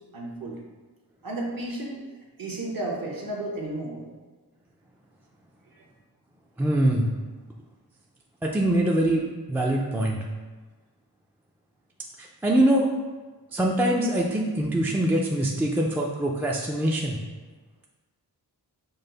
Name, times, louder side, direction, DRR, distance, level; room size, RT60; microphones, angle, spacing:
voice 1, 0.1-0.6 1.2-2.0 2.4-4.1 5.7-5.8, right 1 dB, 55° right, -1 dB, 1.0 m, -33 dB
voice 2, 6.6-7.1 8.4-10.2 12.2-12.9 13.5-17.2, right 1 dB, 5° right, -2 dB, 0.4 m, -23 dB
5.4 x 2.1 x 3.9 m, 1.3 s
cardioid pair, 65°, 42 cm